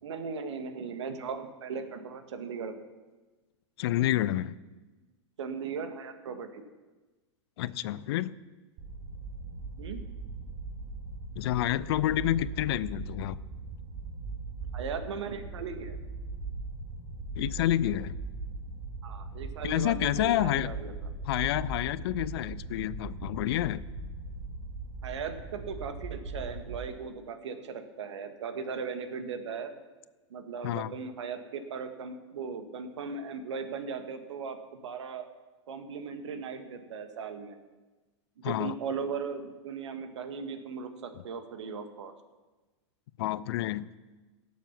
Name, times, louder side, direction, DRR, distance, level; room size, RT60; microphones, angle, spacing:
voice 1, 0.0-2.8 5.4-6.6 9.8-10.0 14.7-16.0 19.0-20.9 25.0-29.7 30.3-35.3 35.7-37.6 38.4-42.1, right 5 dB, 65° right, 8 dB, 1.5 m, -38 dB
voice 2, 3.8-4.6 7.6-8.3 11.4-13.4 17.4-18.2 19.6-20.7 21.3-23.8 30.6-30.9 38.4-38.8 43.2-43.9, left 14 dB, 55° left, 19 dB, 0.5 m, -29 dB
sound 1, 8.8-26.8, right 3 dB, 50° right, 3.4 m, -40 dB
17.5 x 7.3 x 5.8 m, 1.2 s
figure-of-eight pair, 100°, 16 cm